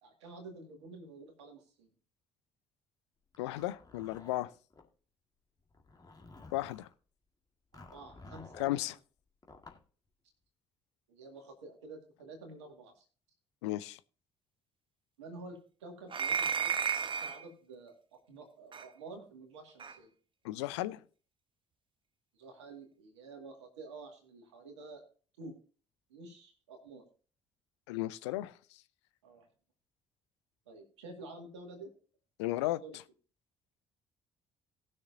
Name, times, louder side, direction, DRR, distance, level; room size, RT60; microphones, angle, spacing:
voice 1, 0.0-1.9 7.7-8.5 11.1-13.0 15.2-16.7 17.0-17.9 18.3-20.1 22.3-25.0 25.4-25.5 26.1-27.0 29.2-29.5 30.7-31.9 32.6-33.0, right 3 dB, 80° right, 2.1 m, -50 dB
Zipper (clothing), 3.3-4.9 5.7-6.9 7.7-8.8 9.4-9.8, left 3 dB, 25° left, 1.9 m, -53 dB
voice 2, 3.4-4.5 6.5-6.9 8.6-9.0 13.6-14.0 20.4-21.0 27.9-28.5 32.4-32.8, left 16 dB, 75° left, 0.5 m, -34 dB
sound 1, 16.1-17.4 18.7-18.9 19.8-20.0, right 7 dB, 35° right, 0.9 m, -32 dB
18.5 x 6.5 x 2.7 m
figure-of-eight pair, 45°, 15 cm